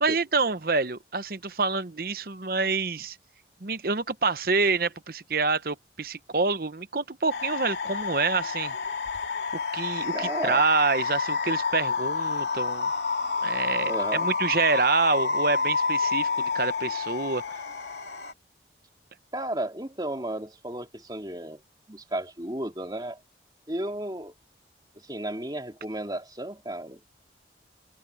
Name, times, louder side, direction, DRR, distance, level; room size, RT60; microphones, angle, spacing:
voice 1, 0.0-3.2 3.6-8.7 9.5-12.9 13.4-17.6, right 4 dB, 50° right, 0.9 m, -27 dB
sound 1, 7.3-18.3, left 4 dB, 70° left, 2.6 m, -29 dB
voice 2, 10.1-10.6 13.9-14.3 19.3-21.6 21.9-23.2 23.7-24.3 25.0-27.0, right 1 dB, 20° right, 2.7 m, -33 dB
head